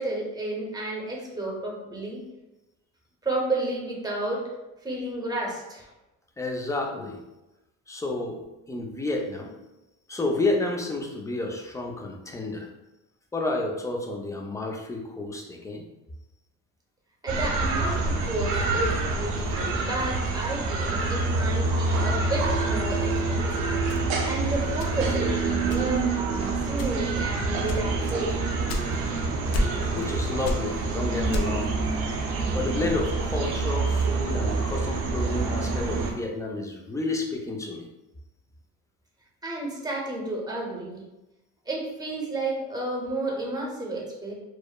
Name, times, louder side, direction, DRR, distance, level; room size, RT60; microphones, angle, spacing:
voice 1, 0.0-2.2 3.2-4.5 4.8-5.9 17.2-23.7 24.0-28.8 29.6-29.7 39.4-41.0 41.7-44.3, right 2 dB, 10° right, -2 dB, 0.8 m, -31 dB
voice 2, 6.4-7.2 7.9-9.5 10.1-12.7 13.3-15.8 29.9-31.8 32.5-37.9, left 2 dB, 10° left, 1 dB, 0.4 m, -30 dB
sound 1, 17.3-36.1, right 3 dB, 75° right, 0.6 m, -27 dB
sound 2, 23.9-25.3 25.7-26.2 26.7-27.2 27.7-29.2 29.5-30.1 30.4-31.7, left 1 dB, 65° left, 0.5 m, -31 dB
2.9 x 2.0 x 2.2 m, 0.99 s
supercardioid pair, 80°, 37 cm